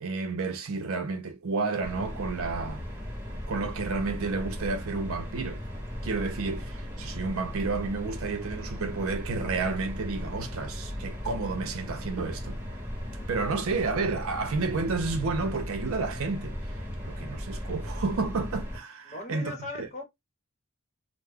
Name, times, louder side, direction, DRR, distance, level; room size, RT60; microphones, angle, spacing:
voice 1, 0.0-2.9 3.5-5.6 6.0-12.6 13.3-16.6 17.0-19.9, right 3 dB, 65° right, 0.6 m, -31 dB
sound 1, 1.8-18.8, equal, 10° right, 1.1 m, -37 dB
voice 2, 19.1-20.0, left 2 dB, 35° left, 0.9 m, -38 dB
2.2 x 2.1 x 3.3 m
head